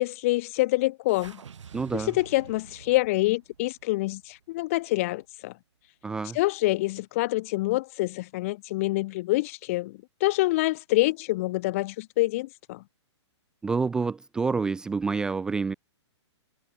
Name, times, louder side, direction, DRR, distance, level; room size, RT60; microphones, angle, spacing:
voice 1, 0.0-1.4 1.9-5.5 6.3-12.8, left 19 dB, 30° left, 0.9 m, -26 dB
sound 1, 1.1-5.4, right 7 dB, 85° right, 3.4 m, -49 dB
voice 2, 1.7-2.1 6.0-6.4 13.6-15.7, right 4 dB, 5° right, 0.6 m, -28 dB
hypercardioid pair, 170°, 15 cm